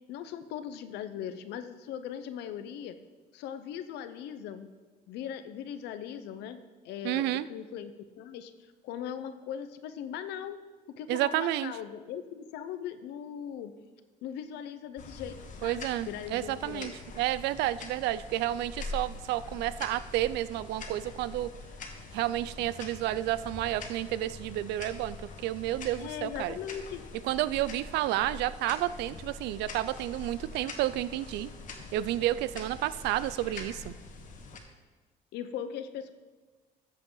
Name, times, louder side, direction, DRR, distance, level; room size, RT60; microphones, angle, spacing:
voice 1, 0.1-3.0 3.3-4.7 5.1-6.6 6.8-7.9 8.2-8.5 8.8-10.6 11.0-13.7 14.2-16.9 26.0-27.0 35.3-36.1, left 9 dB, 85° left, 11 dB, 0.8 m, -39 dB
voice 2, 7.0-7.5 11.1-11.7 15.6-21.5 22.1-25.2 25.4-26.6 27.2-31.5 31.9-33.9, right 14 dB, 85° right, 16 dB, 0.4 m, -31 dB
sound 1, 15.0-34.6, left 3 dB, 50° left, 1.5 m, -44 dB
14.0 x 7.5 x 3.9 m, 1.3 s
cardioid pair, 110°, 17 cm